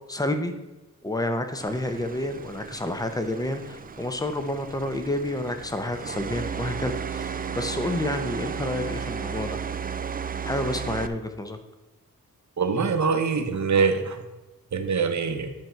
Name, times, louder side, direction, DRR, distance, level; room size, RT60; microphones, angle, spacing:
voice 1, 0.1-0.5 1.0-9.6 10.4-11.6, left 1 dB, 10° left, 7 dB, 0.7 m, -29 dB
sound 1, 1.6-11.1, right 6 dB, 25° right, 0.3 m, -34 dB
voice 2, 12.6-14.2 14.7-15.5, right 5 dB, 55° right, 7 dB, 0.9 m, -24 dB
10.5 x 4.5 x 5.7 m, 1.1 s
wide cardioid pair, 155°, 35 cm